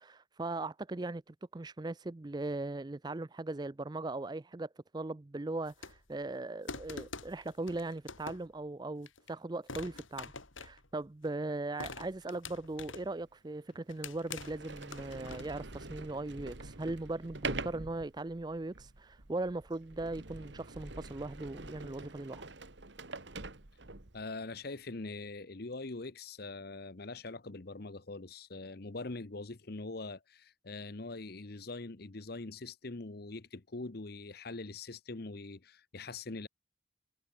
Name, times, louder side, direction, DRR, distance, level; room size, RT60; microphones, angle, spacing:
voice 1, 0.0-10.3 10.6-22.4, right 2 dB, 20° right, 0.4 m, -39 dB
sound 1, 5.6-6.2 6.7-8.6 9.1-9.3 9.7-11.3 11.8-13.2 13.7-15.7, left 4 dB, 75° left, 5.2 m, -46 dB
Sliding door, 12.9-13.0 13.7-13.8 14.3-24.2, right 3 dB, 60° right, 1.9 m, -45 dB
voice 2, 24.1-36.5, left 3 dB, 50° left, 0.9 m, -43 dB
head